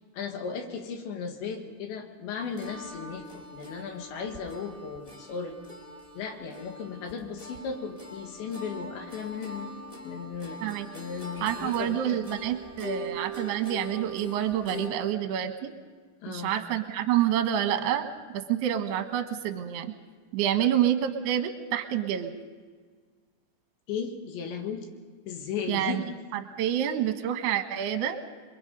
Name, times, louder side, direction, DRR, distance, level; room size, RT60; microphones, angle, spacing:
voice 1, 0.1-5.6 6.2-9.7 10.0-12.2 16.2-16.6 20.6-20.7 23.9-24.9 25.3-26.1, left 6 dB, 70° left, 4 dB, 4.0 m, -36 dB
sound 1, 2.6-14.9, right 1 dB, 10° left, 2.7 m, -42 dB
voice 2, 11.4-15.7 16.3-18.1 18.3-19.9 20.3-22.3 25.7-26.0 26.3-28.2, right 10 dB, 70° right, 7 dB, 3.1 m, -28 dB
28.0 x 23.0 x 5.4 m, 1.5 s
omnidirectional pair, 5.4 m